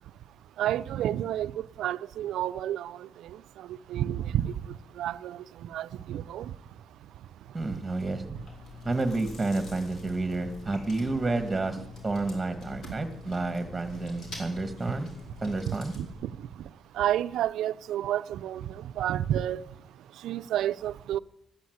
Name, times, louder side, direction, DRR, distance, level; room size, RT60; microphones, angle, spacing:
voice 1, 0.6-1.5 1.8-3.0 3.9-4.5 5.0-5.4 5.7-6.5 15.7-16.3 17.0-19.6 20.2-21.2, right 11 dB, 80° right, 0.4 m, -30 dB
voice 2, 7.5-8.2 8.8-11.8 12.0-15.1 15.4-15.9, right 2 dB, 15° right, 1.5 m, -30 dB
Chewing mastication, 8.0-16.1, left 2 dB, 60° left, 4.6 m, -45 dB
13.5 x 9.7 x 7.9 m
cardioid pair, 90°, 0 cm